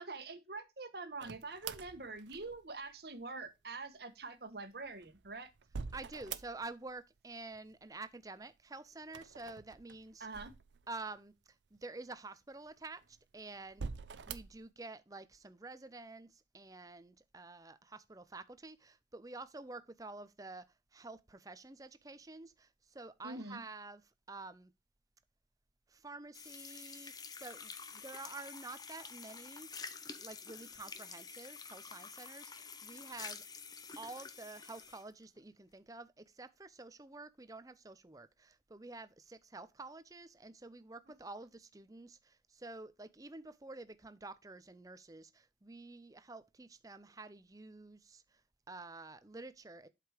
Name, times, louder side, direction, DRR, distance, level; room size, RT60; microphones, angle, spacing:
voice 1, 0.0-5.5 10.2-10.5 23.2-23.6, right 3 dB, 60° right, 1.3 m, -45 dB
sound 1, 1.2-2.9 4.7-6.9 7.2-7.9 9.0-11.2 11.8-11.9 12.7-13.2 13.7-14.7, right 5 dB, 85° right, 0.6 m, -46 dB
voice 2, 5.9-10.3 10.9-13.9 14.3-24.0 24.3-24.7 25.9-29.7 30.2-33.5 34.0-48.4 48.7-49.9, right 3 dB, 20° right, 0.6 m, -49 dB
sound 2, 26.3-35.1, left 5 dB, 20° left, 0.6 m, -49 dB
7.9 x 5.0 x 4.9 m
head